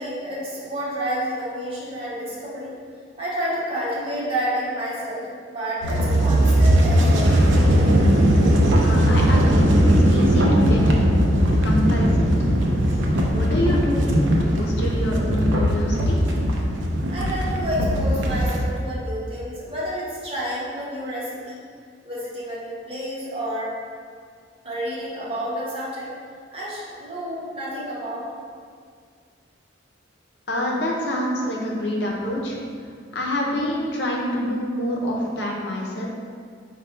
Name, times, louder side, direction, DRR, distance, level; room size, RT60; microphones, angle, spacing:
voice 1, 0.0-2.8 3.2-7.3 17.1-21.6 22.0-23.7 24.6-26.1 26.5-28.3, equal, 30° right, -7 dB, 1.0 m, -29 dB
sound 1, 5.8-18.7, equal, 80° right, 0.5 m, -19 dB
voice 2, 8.8-9.6 10.1-11.0 11.6-12.3 13.3-14.1 14.4-16.2 30.5-32.6 33.1-36.1, left 1 dB, 65° left, -2 dB, 0.7 m, -26 dB
4.3 x 2.3 x 4.3 m, 2.1 s
head